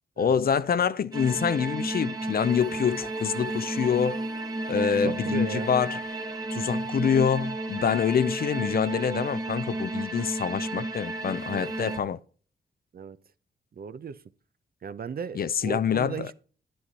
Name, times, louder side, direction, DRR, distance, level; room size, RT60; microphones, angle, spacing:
voice 1, 0.2-4.2 4.7-6.0 6.5-12.2 15.4-16.3, left 7 dB, 55° left, 0.5 m, -26 dB
sound 1, 1.1-12.0, right 1 dB, 20° right, 1.3 m, -32 dB
voice 2, 4.9-5.7 12.9-13.2 13.7-14.2 14.8-16.3, right 6 dB, 55° right, 0.7 m, -36 dB
9.8 x 7.7 x 4.1 m
cardioid pair, 50°, 18 cm